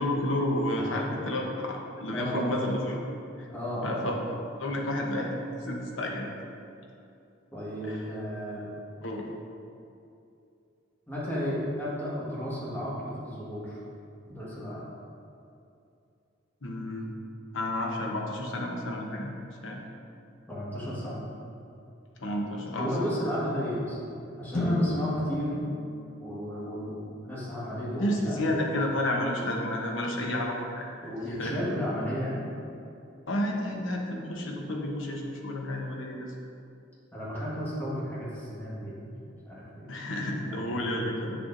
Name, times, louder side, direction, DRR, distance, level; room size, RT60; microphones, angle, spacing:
voice 1, 0.0-3.0 3.4-3.5 3.8-4.2 4.6-5.3 5.6-6.3 7.9-8.0 9.0-9.3 16.6-17.1 17.5-19.3 19.6-19.8 22.2-22.9 28.0-30.9 31.4-31.6 33.3-36.3 39.9-41.3, left 1 dB, 75° left, 0 dB, 1.0 m, -31 dB
voice 2, 2.1-2.5 3.5-4.2 7.5-8.7 11.1-13.8 14.3-14.8 20.5-21.3 22.8-25.5 26.2-28.6 31.0-32.5 37.1-39.1 39.4-40.1 40.5-41.0, equal, 10° left, -8 dB, 1.5 m, -33 dB
sound 1, 24.5-28.6, left 2 dB, 40° left, 0.9 m, -35 dB
7.8 x 6.7 x 2.6 m, 2.6 s
head